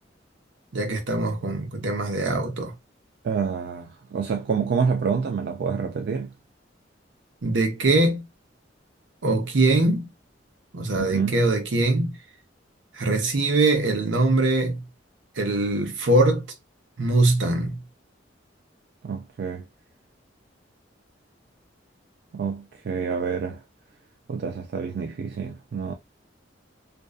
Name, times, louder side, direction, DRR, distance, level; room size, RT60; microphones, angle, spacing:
voice 1, 0.7-2.7 7.4-8.2 9.2-10.1 10.7-12.2 12.9-14.8 15.4-16.5 17.0-17.8, right 2 dB, 85° right, 0.8 m, -22 dB
voice 2, 3.2-6.3 11.0-11.4 19.0-19.6 22.3-23.6 24.3-25.9, right 6 dB, 60° right, 0.3 m, -27 dB
2.5 x 2.3 x 2.3 m
head